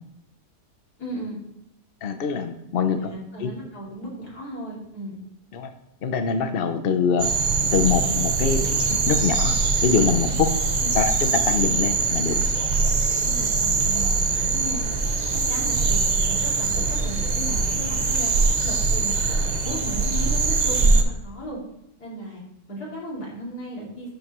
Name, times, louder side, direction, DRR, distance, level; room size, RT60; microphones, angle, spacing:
voice 1, 1.0-1.4 2.9-5.2 10.3-10.4 10.8-11.0 13.2-14.8 15.5-19.1 19.4-21.6 22.0-22.4 22.7-24.1, equal, 70° left, -4 dB, 3.3 m, -35 dB
voice 2, 2.0-3.1 3.4-3.5 5.5-5.7 6.0-7.3 7.6-10.5 10.9-12.4, left 6 dB, 55° left, 8 dB, 0.7 m, -24 dB
sound 1, 7.2-21.0, right 4 dB, 45° right, 0.5 m, -22 dB
12.5 x 6.6 x 3.1 m, 0.80 s
omnidirectional pair, 1.7 m